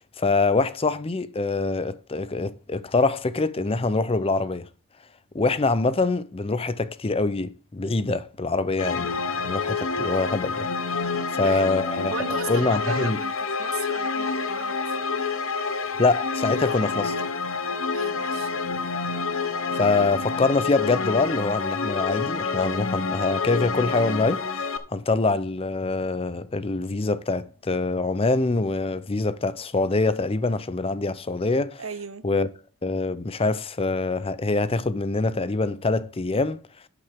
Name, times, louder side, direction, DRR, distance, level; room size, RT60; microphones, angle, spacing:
voice 1, 0.2-4.7 5.3-11.1 11.4-12.1 12.5-13.2 16.0-17.2 19.7-31.8 32.2-32.5 32.8-36.6, left 3 dB, 30° left, 0.6 m, -24 dB
sound 1, 8.8-24.8, left 4 dB, 75° left, 1.1 m, -28 dB
voice 2, 11.1-11.7 12.1-14.8 17.7-18.5 31.8-32.3, right 5 dB, 80° right, 1.0 m, -36 dB
11.5 x 8.3 x 3.6 m
head